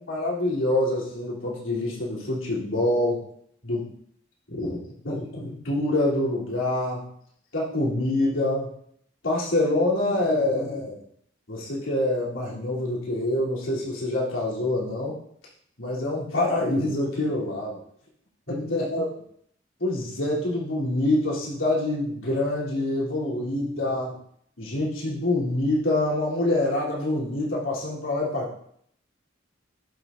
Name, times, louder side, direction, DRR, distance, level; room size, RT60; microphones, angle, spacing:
voice 1, 0.1-3.2 3.6-3.9 4.5-7.1 7.5-8.7 9.2-11.0 11.5-15.2 15.8-17.8 18.5-19.1 19.8-24.1 24.6-28.6, left 1 dB, 90° left, -5 dB, 3.3 m, -26 dB
11.5 x 7.1 x 2.6 m, 0.67 s
head